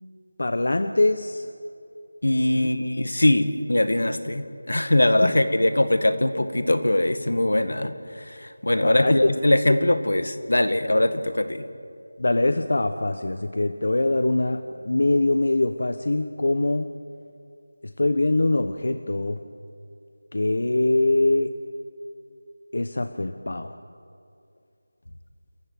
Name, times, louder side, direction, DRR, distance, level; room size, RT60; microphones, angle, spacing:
voice 1, 0.4-1.5 2.6-2.7 5.2-5.4 8.8-9.3 12.2-16.9 18.0-19.4 20.3-21.6 22.7-23.8, left 2 dB, 60° left, 9 dB, 1.1 m, -23 dB
voice 2, 2.2-11.6, left 1 dB, 80° left, 10 dB, 2.0 m, -22 dB
28.5 x 15.0 x 9.0 m, 2.5 s
figure-of-eight pair, 175°, 0 cm